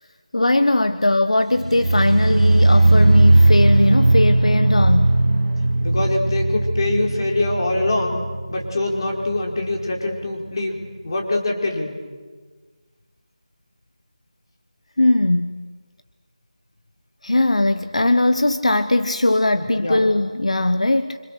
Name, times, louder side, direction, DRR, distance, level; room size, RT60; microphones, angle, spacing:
voice 1, 0.3-5.2 15.0-15.6 17.2-21.2, left 2 dB, 75° left, 11 dB, 1.2 m, -19 dB
sound 1, 1.6-8.7 8.9-9.4 9.7-9.8, right 2 dB, 75° right, 1.8 m, -17 dB
voice 2, 5.8-8.2 8.5-10.8 11.0-11.9 19.5-20.0, left 2 dB, 40° left, 1 dB, 4.8 m, -24 dB
29.0 x 26.5 x 6.7 m, 1.4 s
figure-of-eight pair, 165°, 3 cm